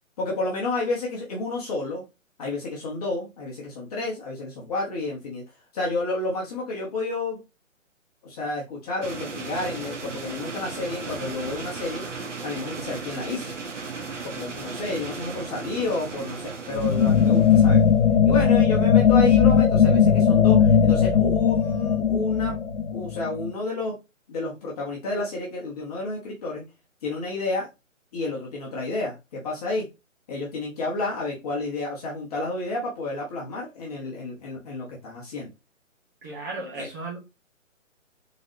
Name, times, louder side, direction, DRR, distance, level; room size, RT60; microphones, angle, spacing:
voice 1, 0.2-2.0 2.4-5.4 5.7-7.4 8.2-12.1 12.4-13.6 14.2-17.8 18.2-22.5 22.9-23.9 24.3-26.7 27.0-27.7 28.1-29.9 30.3-35.5 36.7-36.9, left 2 dB, 30° left, 1.2 m, -30 dB
sound 1, 9.0-18.0, right 4 dB, 65° right, 1.1 m, -36 dB
sound 2, 16.7-23.5, left 7 dB, 70° left, 0.7 m, -18 dB
voice 2, 36.2-37.2, right 3 dB, 15° right, 0.7 m, -35 dB
3.9 x 3.8 x 2.6 m
figure-of-eight pair, 140°, 40 cm